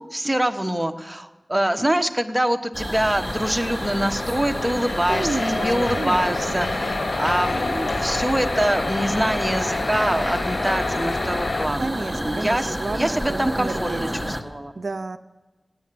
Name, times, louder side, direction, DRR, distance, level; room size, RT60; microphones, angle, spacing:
voice 1, 0.1-14.7, right 1 dB, 15° right, 6 dB, 1.2 m, -25 dB
sound 1, 2.7-14.4, equal, ahead, 1.5 m, -30 dB
sound 2, 3.2-11.7, left 3 dB, 85° left, 0.8 m, -28 dB
voice 2, 5.1-6.7 11.8-14.3 14.8-15.2, right 3 dB, 75° right, 12 dB, 0.5 m, -31 dB
17.5 x 9.9 x 7.7 m, 1.1 s
wide cardioid pair, 45°, 0 cm